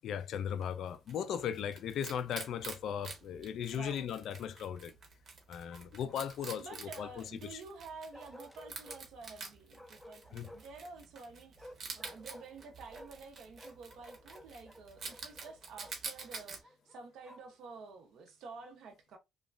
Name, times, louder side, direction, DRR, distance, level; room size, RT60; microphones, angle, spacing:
voice 1, 0.0-5.0 5.5-7.2 7.5-7.6 10.3-10.5, left 8 dB, 75° left, 0.3 m, -37 dB
Wild animals, 0.6-16.6, right 4 dB, 55° right, 1.0 m, -48 dB
Bark, 2.6-3.2 5.7-6.8 8.1-9.0 9.7-10.8 11.6-13.3 13.5-16.0 16.6-17.6, left 1 dB, 5° left, 0.5 m, -55 dB
voice 2, 3.7-4.1 6.6-19.2, right 4 dB, 75° right, 0.6 m, -50 dB
3.1 x 2.2 x 2.4 m
cardioid pair, 90°, 0 cm